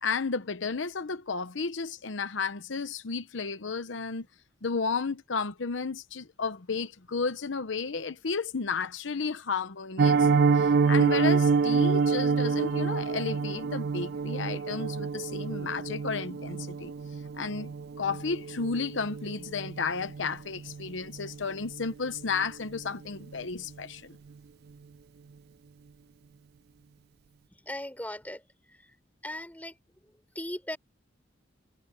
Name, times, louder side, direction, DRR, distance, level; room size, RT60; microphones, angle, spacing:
voice 1, 0.0-4.3 4.6-10.3 10.5-16.9 17.4-17.7 18.0-24.2, left 5 dB, 75° left, 0.9 m, -33 dB
Piano, 10.0-20.9 21.1-21.4 21.7-21.8 22.2-22.4 22.7-22.8, right 5 dB, 55° right, 0.3 m, -27 dB
voice 2, 27.5-28.9 29.2-29.8 30.3-30.8, left 1 dB, 10° left, 6.4 m, -38 dB
head